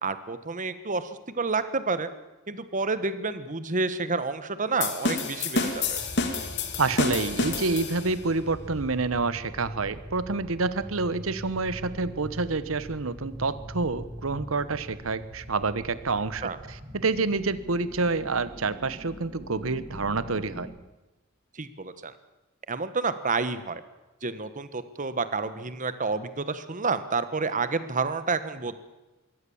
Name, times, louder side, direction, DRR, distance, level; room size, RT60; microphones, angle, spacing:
voice 1, 0.0-1.1 1.4-2.1 2.5-6.0 16.4-16.6 21.5-22.1 22.7-23.8 24.2-28.8, right 4 dB, 40° right, 12 dB, 1.3 m, -29 dB
sound 1, 4.8-8.2, left 3 dB, 60° left, 2.7 m, -29 dB
sound 2, 5.6-20.6, equal, 5° right, 5.7 m, -43 dB
voice 2, 6.8-20.7, right 3 dB, 75° right, 15 dB, 1.1 m, -28 dB
23.0 x 17.0 x 7.2 m, 1.1 s
head